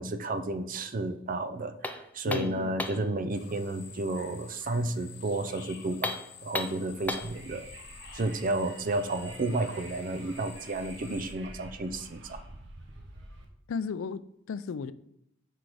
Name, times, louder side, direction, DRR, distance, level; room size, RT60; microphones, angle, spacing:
voice 1, 0.0-6.2 6.4-7.7 8.1-12.4, right 2 dB, 45° right, 0.5 m, -32 dB
sound 1, 1.8-3.1 5.9-7.4, left 2 dB, 10° left, 0.4 m, -35 dB
voice 2, 2.3-2.7 13.7-14.9, left 5 dB, 80° left, 0.4 m, -34 dB
sound 2, 3.3-11.3, left 7 dB, 55° left, 0.9 m, -50 dB
Wind, 6.8-13.5, right 2 dB, 65° right, 1.1 m, -48 dB
6.1 x 4.5 x 4.8 m
head